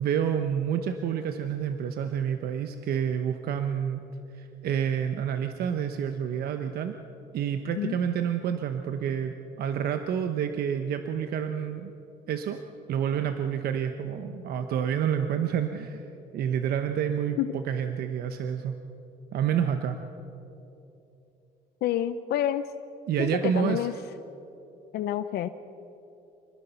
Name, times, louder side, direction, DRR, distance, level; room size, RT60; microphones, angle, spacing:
voice 1, 0.0-4.0 4.3-6.9 7.3-11.9 12.3-12.6 12.9-16.0 16.3-18.8 19.3-20.0 23.1-23.9, right 8 dB, 65° right, 7 dB, 1.1 m, -28 dB
voice 2, 21.8-22.6 23.2-23.9 24.9-25.5, left 11 dB, 70° left, 11 dB, 0.8 m, -28 dB
27.0 x 20.0 x 5.8 m, 2.9 s
cardioid pair, 110°, 17 cm